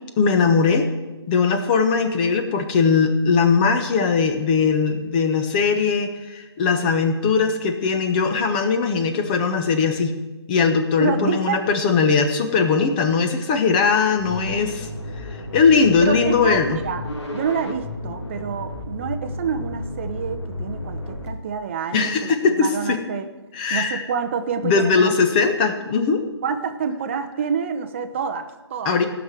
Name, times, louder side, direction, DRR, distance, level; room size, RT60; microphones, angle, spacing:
voice 1, 0.2-0.9 1.3-10.2 10.5-14.9 15.5-16.8 21.9-23.0 23.5-24.0 24.6-26.2 28.8-29.1, left 5 dB, 20° left, 6 dB, 1.0 m, -20 dB
voice 2, 11.0-11.6 16.0-17.0 17.3-23.2 23.7-25.1 26.4-29.0, right 6 dB, 25° right, 8 dB, 0.7 m, -27 dB
sound 1, 14.2-21.3, left 1 dB, 80° left, 3.3 m, -32 dB
15.0 x 6.1 x 7.6 m, 1.1 s
figure-of-eight pair, 160°, 14 cm